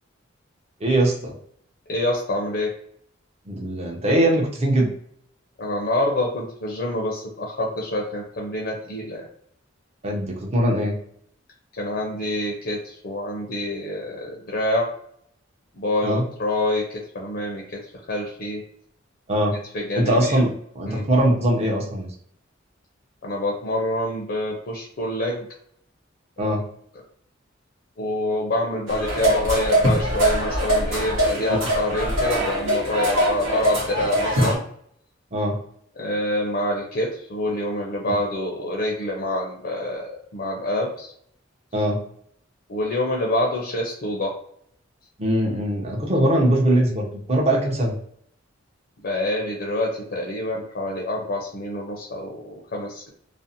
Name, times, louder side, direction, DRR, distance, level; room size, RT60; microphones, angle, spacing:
voice 1, 0.8-1.3 3.5-4.9 10.0-10.9 16.0-16.2 19.3-19.6 19.9-22.1 26.4-26.6 31.5-31.6 35.3-35.6 41.7-42.0 45.2-47.9, right 1 dB, 30° right, -1 dB, 0.6 m, -21 dB
voice 2, 1.9-2.7 5.6-9.3 11.8-14.9 15.8-17.8 18.1-18.6 19.7-20.5 20.8-21.0 23.2-25.5 26.4-26.5 28.0-34.6 36.0-41.1 42.7-44.4 49.0-53.1, left 1 dB, 50° left, 0 dB, 0.5 m, -26 dB
sound 1, 28.9-34.5, equal, 85° right, 1.0 m, -22 dB
2.5 x 2.0 x 2.6 m, 0.67 s
head